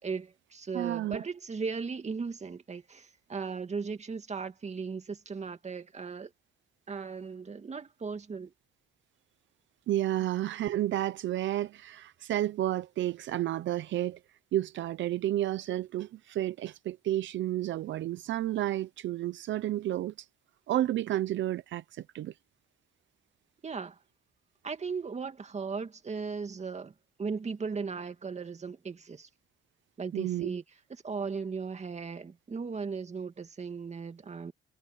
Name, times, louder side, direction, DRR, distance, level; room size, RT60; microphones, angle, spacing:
voice 1, 0.0-6.3 6.9-8.5 23.6-24.0 24.6-26.9 27.2-29.3 30.0-30.6 31.0-34.5, right 5 dB, 35° right, 2.2 m, -37 dB
voice 2, 0.7-1.2 9.9-14.2 14.5-20.3 20.7-22.3 30.1-30.5, right 13 dB, 70° right, 0.7 m, -31 dB
cardioid pair, 90°, 20 cm